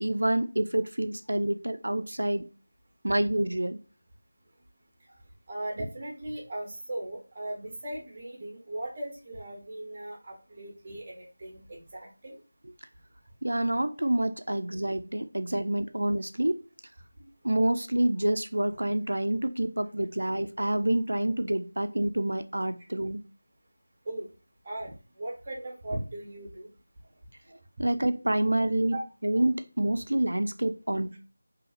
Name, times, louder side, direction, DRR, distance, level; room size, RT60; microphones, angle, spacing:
voice 1, 0.0-2.5 3.0-3.8 13.4-16.6 17.4-23.2 27.8-29.0 29.2-31.1, right 1 dB, 80° right, 9 dB, 0.4 m, -27 dB
voice 2, 5.5-12.4 24.0-24.3 24.6-26.7 28.9-29.0, right 1 dB, 25° right, -1 dB, 1.1 m, -38 dB
4.0 x 2.7 x 2.5 m, 0.34 s
figure-of-eight pair, 170°, 0 cm